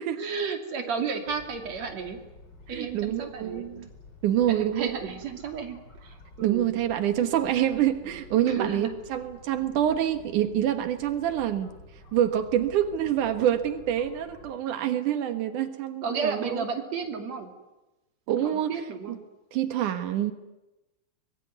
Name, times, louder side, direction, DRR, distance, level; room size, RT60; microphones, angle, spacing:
voice 1, 0.2-2.2 2.7-3.7 4.5-6.7 8.3-8.9 16.0-17.5 18.4-19.2, right 5 dB, 60° right, 5 dB, 3.9 m, -33 dB
sound 1, 1.3-14.5, left 2 dB, 35° left, 4.2 m, -51 dB
voice 2, 2.7-3.9 4.2-4.9 6.4-11.7 12.1-16.6 18.3-18.7 19.1-19.2 19.5-20.3, right 11 dB, 85° right, 9 dB, 2.9 m, -26 dB
24.5 x 22.0 x 9.5 m, 1.0 s
omnidirectional pair, 3.5 m